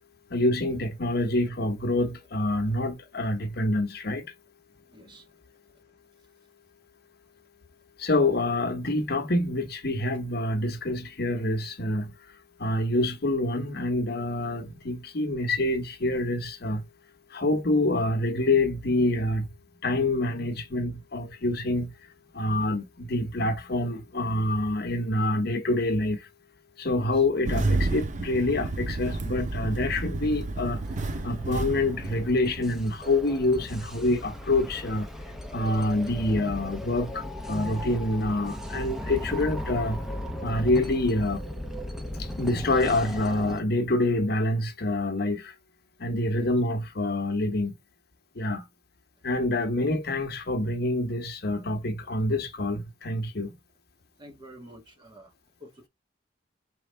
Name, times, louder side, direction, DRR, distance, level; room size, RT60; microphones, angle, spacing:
voice 1, 0.3-4.3 8.0-12.1 12.6-16.9 17.3-19.5 19.8-21.9 22.3-26.3 26.8-30.9 31.2-35.1 35.5-40.0 40.4-41.4 42.2-45.5 46.0-47.7 48.4-48.6 49.2-53.5, left 2 dB, 60° left, 0.9 m, -26 dB
voice 2, 4.9-5.2 46.4-46.5 54.2-55.3 55.6-55.9, equal, 25° right, 1.2 m, -48 dB
Engine starting, 27.5-33.0, right 2 dB, 40° right, 0.5 m, -30 dB
sound 1, 29.9-43.6, left 1 dB, 5° right, 0.7 m, -37 dB
4.5 x 3.3 x 3.3 m
head